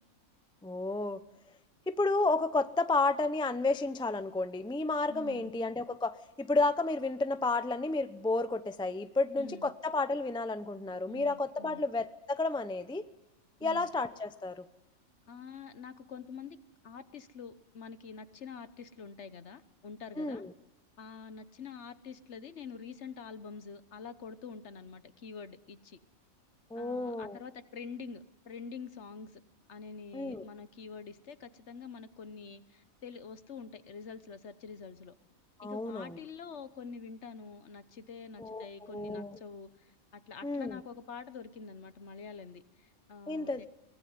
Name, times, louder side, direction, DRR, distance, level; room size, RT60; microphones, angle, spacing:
voice 1, 0.6-1.2 1.9-13.0 13.6-14.6 20.2-20.5 26.7-27.4 30.1-30.5 35.6-36.2 38.4-39.4 40.4-40.8 43.3-43.6, left 3 dB, 5° left, 11 dB, 0.5 m, -31 dB
voice 2, 5.1-5.5 9.3-9.7 11.1-11.8 13.6-13.9 15.3-16.6 16.8-20.4 21.0-26.0 26.7-29.4 29.7-35.1 35.6-43.7, left 5 dB, 55° left, 13 dB, 1.2 m, -46 dB
23.0 x 19.5 x 9.5 m, 1.1 s
omnidirectional pair, 1.5 m